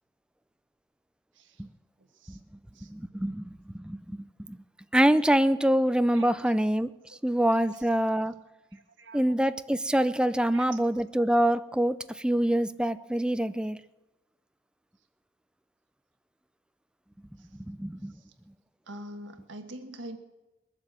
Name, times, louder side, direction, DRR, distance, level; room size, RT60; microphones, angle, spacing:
voice 1, 2.9-4.6 4.9-6.9 7.2-8.4 9.1-13.8 17.5-18.1, right 1 dB, 5° right, 0.4 m, -25 dB
voice 2, 8.7-9.2 10.3-10.7 18.9-20.2, right 1 dB, 80° right, 1.6 m, -44 dB
21.0 x 7.5 x 7.5 m
head